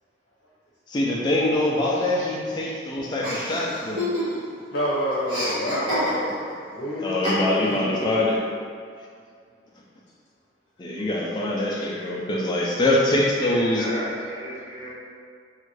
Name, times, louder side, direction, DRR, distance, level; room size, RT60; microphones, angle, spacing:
voice 1, 0.9-4.1 7.0-8.4 10.8-13.9, left 1 dB, 25° left, -4 dB, 0.3 m, -24 dB
voice 2, 1.8-2.3 2.6-2.7 13.3-14.9, equal, 65° right, -14 dB, 0.9 m, -34 dB
Chuckle chortle, 3.2-4.6 4.8-6.5 7.2-7.8, equal, 25° right, 0.9 m, -29 dB
voice 3, 4.5-8.2 11.7-12.3, equal, 80° left, -9 dB, 0.8 m, -29 dB
2.5 x 2.4 x 3.2 m, 2.2 s
head